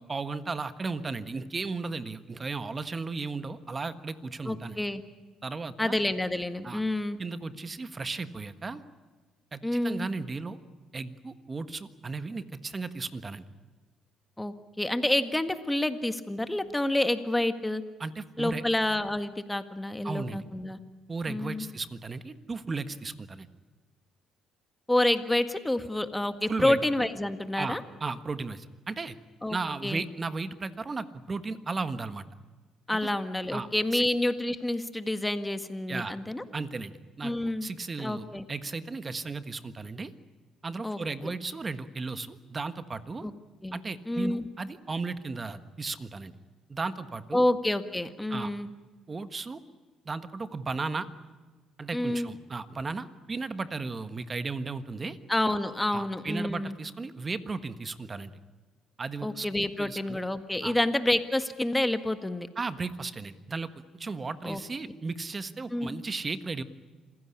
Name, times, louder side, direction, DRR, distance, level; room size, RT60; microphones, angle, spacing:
voice 1, 0.1-4.8 5.4-6.0 6.6-6.8 7.2-8.8 9.5-10.6 10.9-13.4 18.0-18.6 20.0-20.4 21.1-23.5 26.5-26.8 27.5-29.2 29.5-32.3 32.9-33.1 33.5-34.1 35.9-36.1 36.5-40.1 40.6-43.3 43.7-46.3 46.7-47.4 48.3-48.5 49.1-49.6 50.0-51.1 51.8-55.2 55.9-58.3 59.0-59.5 59.8-60.2 60.6-60.7 62.6-63.7 64.0-66.6, right 4 dB, 30° right, 11 dB, 1.5 m, -35 dB
voice 2, 4.5-5.0 5.8-7.2 9.6-10.1 14.4-17.8 18.4-20.8 21.3-21.6 24.9-27.8 29.4-29.6 29.8-30.0 32.9-36.4 37.2-37.7 38.0-38.4 40.8-41.3 43.2-43.3 43.6-43.8 44.1-44.5 47.3-48.7 51.9-52.3 55.3-56.7 59.2-62.5 64.4-64.6 65.7-65.9, left 1 dB, 10° left, 9 dB, 1.7 m, -28 dB
27.0 x 16.0 x 10.0 m, 1.3 s
cardioid pair, 85°, 0 cm